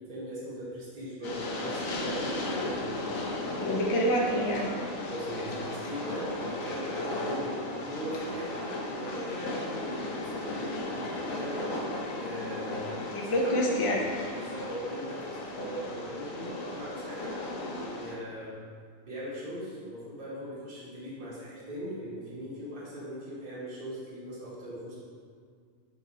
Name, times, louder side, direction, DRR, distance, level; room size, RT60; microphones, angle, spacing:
voice 1, 0.0-2.9 5.0-11.7 12.1-13.6 14.3-17.4 17.7-18.5 19.0-25.0, equal, 35° right, -8 dB, 1.4 m, -40 dB
Train, 1.2-18.1, left 2 dB, 70° left, 1.2 m, -36 dB
voice 2, 3.6-4.7 13.1-14.0, equal, 30° left, -1 dB, 0.7 m, -27 dB
7.4 x 4.8 x 3.0 m, 2.1 s
omnidirectional pair, 1.5 m